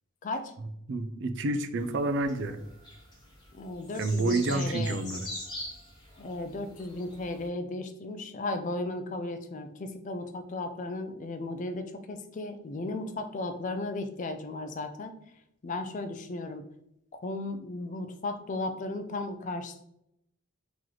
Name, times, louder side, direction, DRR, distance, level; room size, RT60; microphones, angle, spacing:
voice 1, 0.2-0.5 3.5-5.0 6.2-15.1 15.6-16.6 17.1-19.8, left 2 dB, 35° left, 8 dB, 0.3 m, -35 dB
voice 2, 0.9-2.6 4.0-5.3, right 2 dB, 55° right, 8 dB, 0.4 m, -29 dB
sound 1, 1.8-7.5, left 1 dB, 20° left, 0.9 m, -43 dB
3.0 x 3.0 x 3.8 m, 0.78 s
head